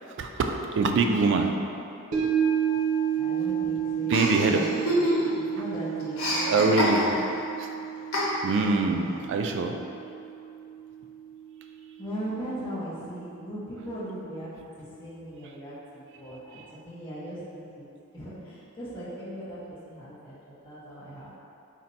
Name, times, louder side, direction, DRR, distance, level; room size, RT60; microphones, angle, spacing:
voice 1, 0.1-1.5 4.1-4.6 6.4-7.1 7.6-7.7 8.4-9.8 16.5-16.6, right 3 dB, 55° right, 4 dB, 0.3 m, -24 dB
sound 1, 2.1-12.5 12.9-13.0, right 8 dB, 85° right, 0.8 m, -31 dB
voice 2, 3.2-5.1 5.3-6.7 8.8-9.2 12.0-17.9 18.1-21.4, equal, 25° left, -12 dB, 1.0 m, -39 dB
Chuckle chortle, 4.1-5.5 5.7-7.4 8.1-8.7, equal, 70° left, 0.9 m, -27 dB
4.1 x 2.5 x 4.0 m, 2.7 s
head